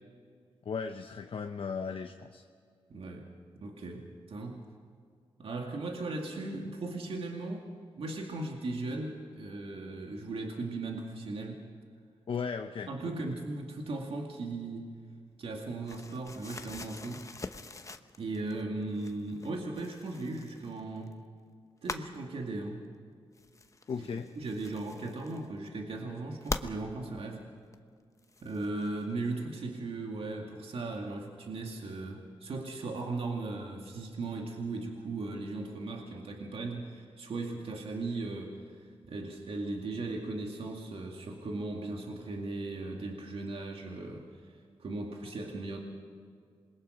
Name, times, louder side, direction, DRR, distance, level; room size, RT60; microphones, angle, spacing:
voice 1, 0.6-2.4 12.3-13.3 23.9-24.3, left 5 dB, 65° left, 6 dB, 0.9 m, -36 dB
voice 2, 2.9-3.3 3.6-4.7 5.4-7.7 8.0-11.7 12.9-14.9 15.4-17.3 18.2-21.2 21.8-22.9 23.9-24.0 24.4-27.5 28.4-38.6 39.0-44.3 44.8-45.8, right 2 dB, 70° right, 1 dB, 2.2 m, -37 dB
sound 1, 15.9-18.6 18.9-21.1 21.8-22.2 23.3-25.7 26.4-26.7 27.7-27.8 28.2-29.0, left 3 dB, 30° left, 1.0 m, -42 dB
27.0 x 21.5 x 5.1 m, 2.2 s
cardioid pair, 75°, 10 cm